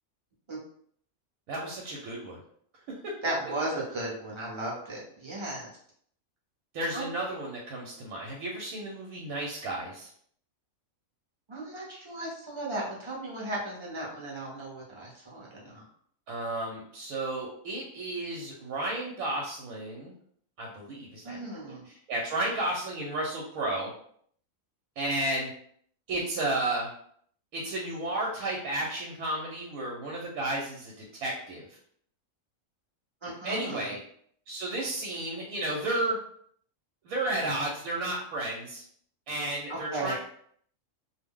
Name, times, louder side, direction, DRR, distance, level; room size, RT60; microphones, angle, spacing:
voice 1, 1.5-2.4 6.7-10.1 16.3-20.1 20.6-21.5 21.8-23.9 25.0-25.5 26.1-26.9 27.5-30.9 31.2-31.7 33.4-34.0 34.5-36.2 37.0-38.8 39.3-40.1, right 1 dB, 90° right, -2 dB, 1.0 m, -32 dB
voice 2, 3.2-5.7 6.9-7.1 11.5-15.8 21.2-21.8 33.2-33.9 39.7-40.1, right 1 dB, 30° right, -4 dB, 0.5 m, -35 dB
2.4 x 2.0 x 3.6 m, 0.63 s
omnidirectional pair, 1.5 m